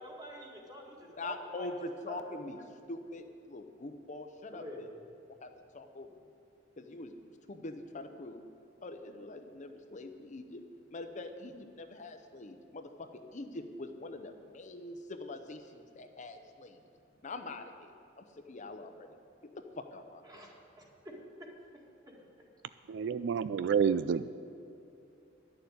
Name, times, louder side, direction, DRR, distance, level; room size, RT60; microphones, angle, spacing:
voice 1, 0.0-1.7 2.1-2.2 4.5-5.0 20.2-22.5, equal, 20° right, -1 dB, 2.0 m, -48 dB
voice 2, 1.2-2.6 2.9-4.6 5.4-6.1 6.8-7.1 7.5-8.4 8.8-10.6 10.9-16.8 17.2-19.1 19.8-20.2, left 2 dB, 40° left, 6 dB, 0.7 m, -44 dB
voice 3, 22.9-24.3, right 7 dB, 65° right, 14 dB, 0.3 m, -29 dB
11.0 x 6.9 x 9.3 m, 2.6 s
head